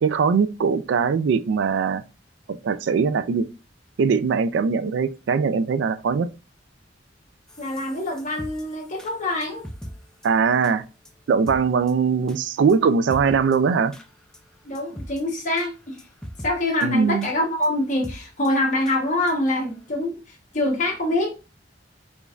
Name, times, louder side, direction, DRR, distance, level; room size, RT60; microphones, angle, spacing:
voice 1, 0.0-2.0 2.6-3.5 4.0-6.3 10.2-10.8 11.3-13.9 16.8-17.3, right 5 dB, 75° right, 0.3 m, -21 dB
sound 1, 7.5-9.9 10.2-10.3 10.6-10.7 11.1-11.2 11.5-11.6 11.9-12.0 12.3-12.4 12.7-12.8 13.1-13.6 13.9-14.1 14.3-14.4 14.8-15.2 15.6-15.7 16.0-16.5 16.8-16.9 17.2-17.4 17.6-17.7 18.0-18.2 18.4-18.5 18.9-19.0 19.3-19.4 19.7-19.8, equal, 5° left, 0.4 m, -39 dB
voice 2, 7.6-9.6 14.6-16.0 16.4-21.3, left 1 dB, 45° left, 1.1 m, -25 dB
4.9 x 2.5 x 2.4 m
head